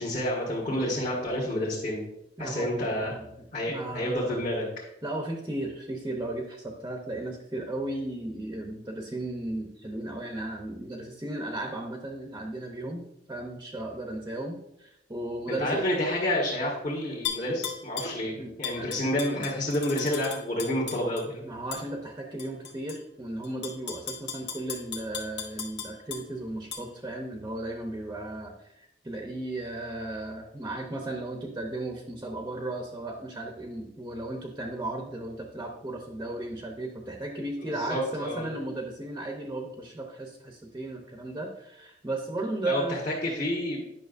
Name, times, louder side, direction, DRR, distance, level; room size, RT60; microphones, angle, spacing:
voice 1, 0.0-2.0 2.4-3.1 3.5-4.6 15.5-18.3 18.6-21.4 37.6-38.5 42.6-43.8, left 1 dB, 40° left, -6 dB, 1.6 m, -29 dB
voice 2, 2.4-2.7 3.0-4.4 5.0-15.9 18.4-18.9 21.4-43.0, right 1 dB, 20° right, 1 dB, 0.7 m, -35 dB
Tap / Glass, 17.2-18.2 18.6-21.2 21.7-21.8 22.4-23.0 23.4-26.2 26.7-26.8, left 7 dB, 70° left, 1.3 m, -36 dB
9.4 x 5.8 x 2.6 m, 0.82 s
head